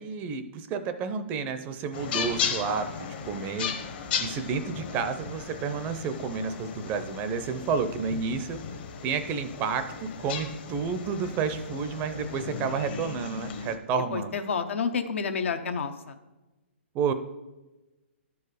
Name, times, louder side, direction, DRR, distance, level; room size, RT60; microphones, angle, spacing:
voice 1, 0.0-3.7 4.2-8.6 9.0-14.4 16.9-17.1, right 5 dB, 25° right, 10 dB, 0.5 m, -30 dB
sound 1, 1.9-13.8, left 6 dB, 45° left, 1.0 m, -36 dB
voice 2, 14.1-16.2, left 5 dB, 70° left, 7 dB, 0.8 m, -29 dB
11.5 x 4.7 x 4.9 m, 1.1 s
hypercardioid pair, 145°, 7 cm